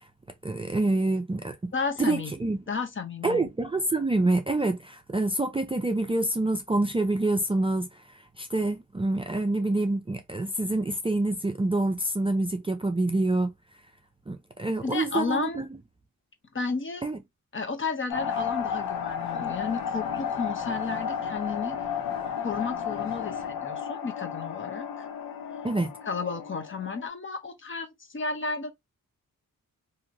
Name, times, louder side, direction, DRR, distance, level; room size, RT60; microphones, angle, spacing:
voice 1, 0.4-1.7 2.0-2.6 3.2-8.0 8.4-13.5 14.3-15.6 17.0-17.2 25.6-25.9, right 2 dB, 15° right, 0.4 m, -26 dB
voice 2, 1.7-2.3 2.7-3.5 14.8-15.6 16.5-17.0 17.5-21.8 22.4-25.1 26.1-28.7, left 4 dB, 35° left, 0.8 m, -32 dB
sound 1, 18.1-27.1, left 7 dB, 85° left, 0.7 m, -33 dB
2.9 x 2.7 x 2.5 m
cardioid pair, 65°, 34 cm